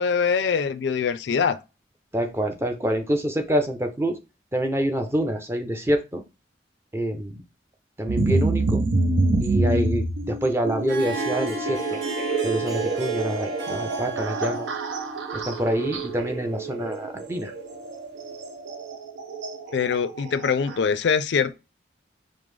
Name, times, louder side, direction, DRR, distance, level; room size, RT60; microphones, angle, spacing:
voice 1, 0.0-1.6 19.7-21.5, left 6 dB, 70° left, 0.4 m, -23 dB
voice 2, 2.1-4.2 4.5-6.2 6.9-7.4 8.0-8.8 9.4-12.0 12.4-14.7 15.3-17.5, equal, 15° right, 0.5 m, -26 dB
sound 1, 8.1-20.8, right 3 dB, 90° right, 0.6 m, -27 dB
Harp, 10.6-18.3, right 1 dB, 65° right, 1.0 m, -36 dB
5.1 x 2.0 x 3.2 m
head